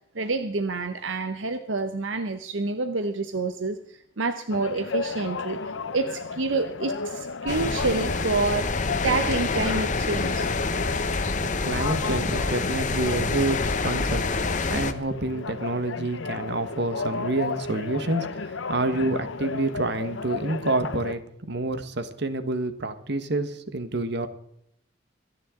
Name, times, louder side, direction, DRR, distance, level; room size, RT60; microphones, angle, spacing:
voice 1, 0.1-5.6 5.9-10.5, right 3 dB, 80° right, 8 dB, 0.9 m, -28 dB
sound 1, 4.5-21.1, left 4 dB, 80° left, 0.8 m, -34 dB
sound 2, 7.5-14.9, left 3 dB, 40° left, 1.0 m, -27 dB
voice 2, 11.4-14.3 14.7-21.2 21.5-24.3, right 2 dB, 60° right, 10 dB, 1.4 m, -28 dB
26.0 x 10.0 x 3.8 m, 0.74 s
head